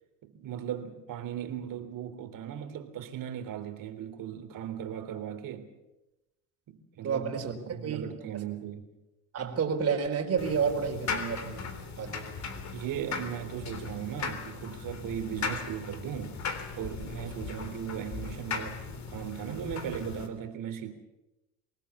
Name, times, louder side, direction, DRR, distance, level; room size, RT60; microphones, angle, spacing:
voice 1, 0.2-5.7 6.7-8.9 12.7-16.4 16.8-20.9, right 9 dB, 50° right, 3.6 m, -38 dB
voice 2, 7.0-7.5 7.8-8.0 9.3-11.6 12.0-12.3, right 6 dB, 35° right, 4.4 m, -30 dB
sound 1, 10.4-20.3, left 5 dB, 40° left, 3.6 m, -38 dB
25.5 x 19.0 x 7.3 m
supercardioid pair, 100°, 40 cm